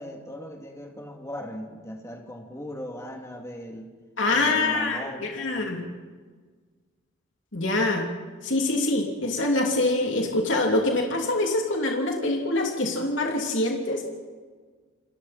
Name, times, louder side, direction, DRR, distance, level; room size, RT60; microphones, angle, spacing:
voice 1, 0.0-3.9 4.2-5.7, equal, 15° left, 1 dB, 2.8 m, -38 dB
voice 2, 4.2-5.8 7.5-8.1 8.4-14.1, left 2 dB, 70° left, 1 dB, 3.0 m, -25 dB
29.0 x 22.0 x 4.4 m, 1.5 s
head